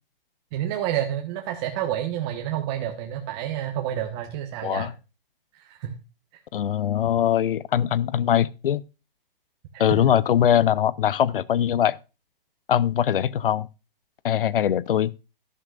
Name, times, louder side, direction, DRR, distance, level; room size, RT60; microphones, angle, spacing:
voice 1, 0.5-4.9 5.6-5.9 9.7-10.2, right 11 dB, 25° right, 1.3 m, -29 dB
voice 2, 4.6-4.9 6.5-8.8 9.8-12.0 12.7-13.7 14.2-15.1, left 10 dB, 70° left, 0.8 m, -22 dB
13.0 x 11.5 x 2.4 m
hypercardioid pair, 150°, 29 cm